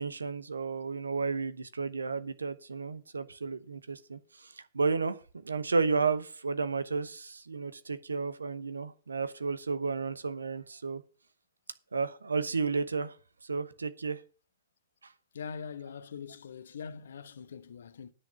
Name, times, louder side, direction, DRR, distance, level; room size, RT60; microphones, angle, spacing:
voice 1, 0.0-11.0 11.9-13.2 13.4-14.2 15.0-15.1, right 4 dB, 75° right, 0.9 m, -32 dB
voice 2, 15.3-18.1, left 6 dB, 65° left, 0.9 m, -42 dB
9.9 x 5.8 x 7.0 m
figure-of-eight pair, 105°, 0 cm